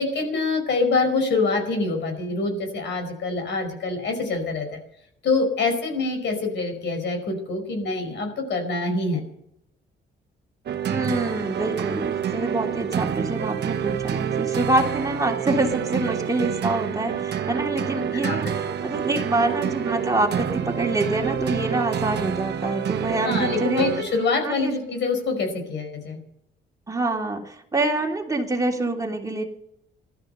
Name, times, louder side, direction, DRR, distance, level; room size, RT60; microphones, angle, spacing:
voice 1, 0.0-4.7 5.2-9.2 18.1-18.4 18.7-18.8 23.2-26.2, left 3 dB, 65° left, 5 dB, 5.3 m, -25 dB
sound 1, 10.7-24.4, right 9 dB, 60° right, 1.2 m, -28 dB
voice 2, 10.9-23.9 24.4-24.7 26.9-29.4, right 2 dB, 15° right, 1 dB, 3.0 m, -26 dB
16.0 x 12.5 x 6.8 m, 0.75 s
cardioid pair, 90°, 20 cm